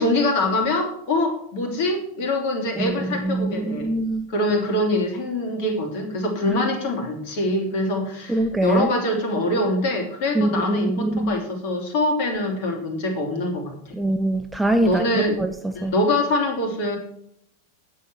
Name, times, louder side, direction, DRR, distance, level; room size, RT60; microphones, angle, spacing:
voice 1, 0.0-3.9 4.3-14.0 14.8-15.4 15.7-17.0, left 1 dB, 50° left, 3.1 m, -24 dB
voice 2, 3.2-4.3 8.3-8.9 10.3-11.3 14.0-15.9, right 1 dB, 5° right, 0.7 m, -23 dB
9.9 x 7.6 x 6.2 m
figure-of-eight pair, 90°, 0 cm